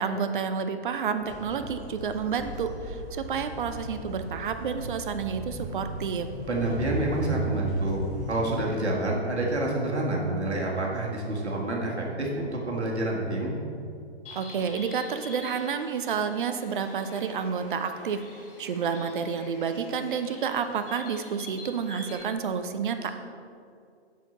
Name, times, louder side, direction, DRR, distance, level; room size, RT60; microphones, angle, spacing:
voice 1, 0.0-6.3 14.4-18.2 18.6-23.1, right 6 dB, 50° right, 8 dB, 0.6 m, -30 dB
sound 1, 1.2-8.6, right 1 dB, 5° right, 1.3 m, -36 dB
voice 2, 6.5-13.6, right 1 dB, 75° right, -2 dB, 1.8 m, -28 dB
Bird, 14.3-22.2, left 2 dB, 55° left, 1.7 m, -46 dB
7.7 x 6.7 x 4.0 m, 2.4 s
figure-of-eight pair, 125°, 34 cm